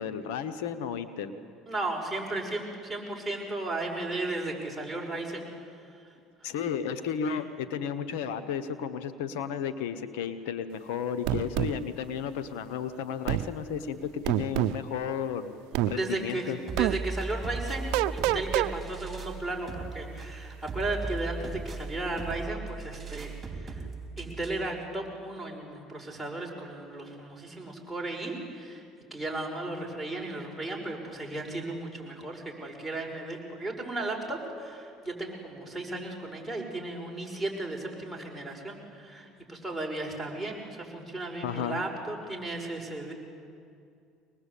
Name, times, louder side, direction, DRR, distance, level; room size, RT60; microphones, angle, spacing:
voice 1, 0.0-1.3 6.4-15.5 15.9-16.6 41.4-41.8, left 7 dB, 80° left, 11 dB, 1.1 m, -33 dB
voice 2, 1.7-5.7 7.2-7.4 15.7-23.8 24.2-28.8 29.1-43.1, right 2 dB, ahead, 2 dB, 6.0 m, -35 dB
sound 1, 11.3-11.7 13.3-13.5 14.3-14.8 15.7-15.9 16.8-17.0 17.9-18.7, right 15 dB, 75° right, 0.6 m, -26 dB
sound 2, 16.7-24.7, right 3 dB, 25° right, 3.8 m, -38 dB
24.0 x 20.0 x 8.5 m, 2.4 s
supercardioid pair, 90°, 0 cm